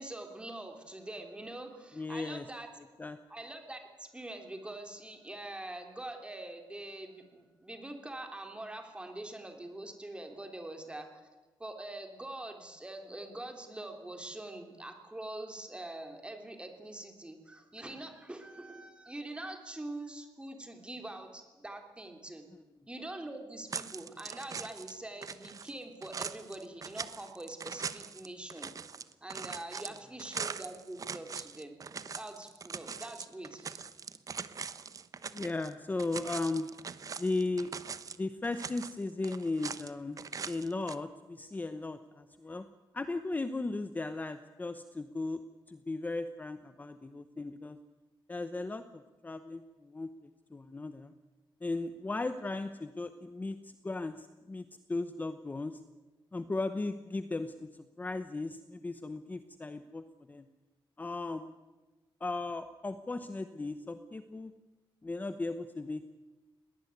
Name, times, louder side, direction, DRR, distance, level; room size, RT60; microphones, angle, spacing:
voice 1, 0.0-2.7 3.3-11.1 11.6-22.5 22.9-28.7 29.2-31.8 32.2-33.8, right 1 dB, 10° right, 5 dB, 3.1 m, -44 dB
voice 2, 1.9-2.5 3.0-3.2 35.3-36.7 37.2-37.7 38.2-40.2 40.5-42.7 42.9-45.4 45.7-47.8 48.3-51.1 51.6-55.8 56.3-60.5 61.0-61.5 62.2-64.5 65.0-66.1, left 2 dB, 20° left, 10 dB, 0.9 m, -36 dB
sound 1, 23.7-25.0 25.2-35.7 36.0-38.2 38.4-39.9 40.2-41.0, right 6 dB, 40° right, 0.9 m, -42 dB
21.0 x 18.5 x 9.6 m, 1.2 s
wide cardioid pair, 150°, 9 cm